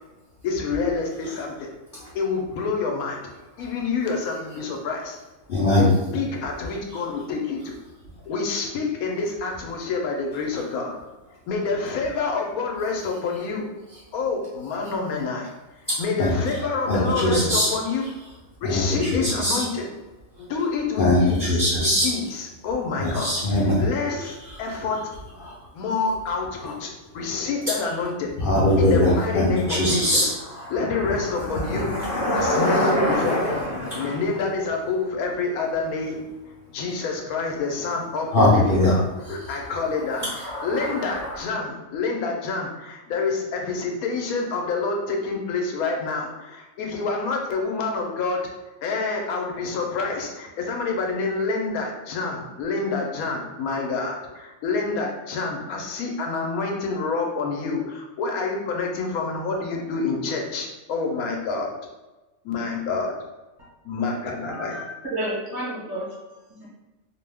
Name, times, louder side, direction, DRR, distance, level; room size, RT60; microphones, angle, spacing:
voice 1, 0.4-1.7 2.1-3.3 3.6-5.2 5.8-7.7 8.3-11.0 11.5-13.7 14.1-15.5 16.0-18.2 18.6-19.9 20.4-25.1 25.7-28.3 28.8-30.3 30.7-31.9 32.3-33.5 34.0-36.2 36.7-61.7 62.4-63.2 63.8-64.9, left 4 dB, 85° left, 1 dB, 1.1 m, -28 dB
voice 2, 5.5-5.9 16.2-16.3 16.9-17.7 18.6-19.6 21.0-22.1 22.9-23.8 25.4-25.5 26.6-26.7 28.4-34.1 38.3-38.9 40.2-41.4, left 1 dB, 55° left, -7 dB, 0.6 m, -22 dB
voice 3, 64.4-66.2 66.5-66.7, right 1 dB, 40° right, -7 dB, 0.9 m, -31 dB
2.6 x 2.2 x 3.3 m, 1.1 s
omnidirectional pair, 1.5 m